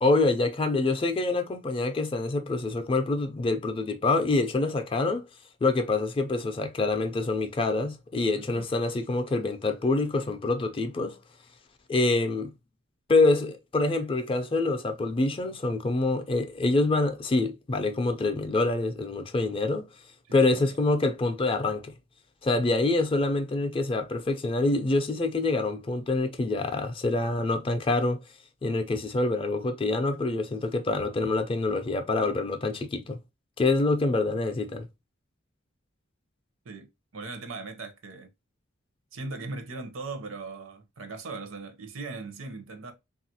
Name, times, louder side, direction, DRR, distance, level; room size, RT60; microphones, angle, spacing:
voice 1, 0.0-5.2 5.6-11.2 11.9-12.5 13.1-19.9 20.3-21.9 22.4-28.2 28.6-33.2 33.6-34.9, left 2 dB, 25° left, 0.4 m, -26 dB
voice 2, 8.4-8.7 20.3-20.7 36.6-36.9 37.1-38.3 39.1-42.9, right 3 dB, 70° right, 0.6 m, -39 dB
3.2 x 2.4 x 2.7 m
head